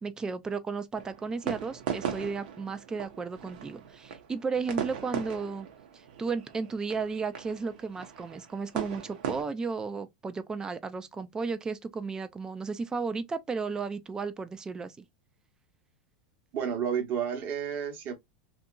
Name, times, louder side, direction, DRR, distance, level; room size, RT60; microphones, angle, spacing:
voice 1, 0.0-5.7 5.9-15.0, right 4 dB, 15° right, 0.3 m, -34 dB
sound 1, 0.9-9.4, right 8 dB, 70° right, 0.7 m, -38 dB
voice 2, 16.5-18.1, right 8 dB, 35° right, 0.9 m, -31 dB
2.8 x 2.4 x 2.3 m
supercardioid pair, 140°, 5 cm